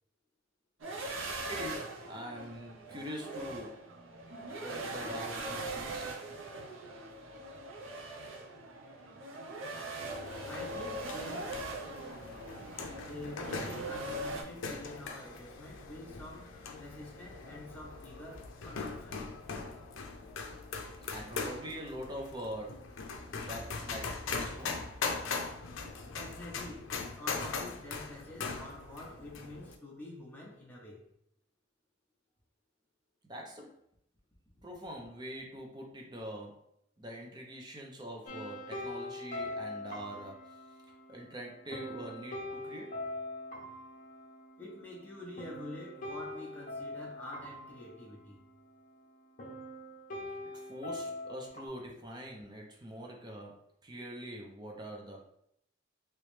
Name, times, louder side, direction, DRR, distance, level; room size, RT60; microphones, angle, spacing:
sound 1, 0.8-14.4, right 2 dB, 80° right, 0.6 m, -41 dB
voice 1, 1.3-3.7 4.6-6.1 21.1-22.8 23.4-24.7 33.3-33.7 34.6-36.6 37.0-40.4 41.1-42.9 50.4-53.5 53.8-55.2, equal, 20° right, 0 dB, 0.6 m, -44 dB
sound 2, 10.0-29.8, left 4 dB, 80° left, 0.5 m, -41 dB
voice 2, 10.5-11.6 13.0-19.2 24.6-24.7 26.1-31.0 44.6-48.5, left 1 dB, 10° left, -4 dB, 0.8 m, -47 dB
sound 3, 38.3-49.0 49.4-51.7, left 1 dB, 45° left, 0.8 m, -43 dB
3.1 x 3.0 x 3.1 m, 0.72 s
head